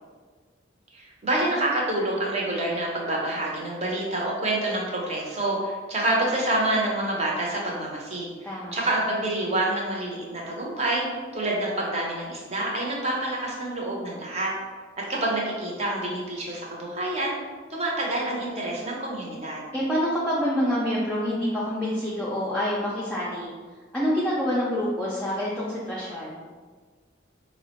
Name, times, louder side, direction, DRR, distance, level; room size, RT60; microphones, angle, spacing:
voice 1, 0.9-11.0 11.3-14.5 15.1-17.4 17.7-19.7, right 1 dB, 35° right, -3 dB, 0.7 m, -27 dB
voice 2, 8.4-8.8 19.7-23.5 23.9-26.4, equal, 5° left, -8 dB, 0.4 m, -27 dB
4.6 x 2.0 x 2.9 m, 1.5 s
head